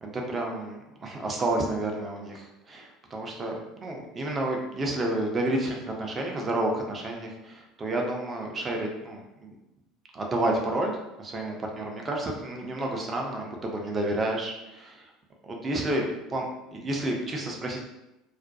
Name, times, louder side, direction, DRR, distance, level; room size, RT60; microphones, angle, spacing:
voice 1, 0.0-9.5 10.1-15.1 15.4-16.5 16.7-17.8, right 1 dB, 30° right, 1 dB, 0.5 m, -30 dB
2.4 x 2.1 x 2.6 m, 0.93 s
figure-of-eight pair, 65°, 0 cm